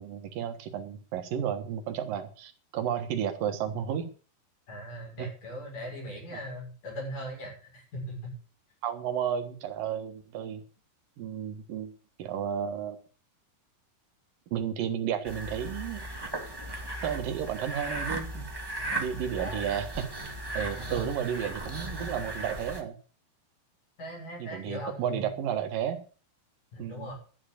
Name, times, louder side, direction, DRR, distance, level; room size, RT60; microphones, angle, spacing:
voice 1, 0.0-4.1 5.2-5.3 6.3-6.4 8.8-10.6 11.2-11.9 12.2-13.0 14.5-16.0 17.0-18.5 19.0-20.1 20.5-23.0 24.4-26.0 26.8-27.1, right 9 dB, 70° right, 7 dB, 3.0 m, -32 dB
voice 2, 4.7-8.3 19.4-19.7 24.0-25.3 26.7-27.1, equal, 55° left, -1 dB, 7.8 m, -39 dB
sound 1, 15.2-22.8, right 1 dB, 15° right, 0.9 m, -37 dB
11.5 x 9.9 x 6.6 m, 0.38 s
omnidirectional pair, 4.4 m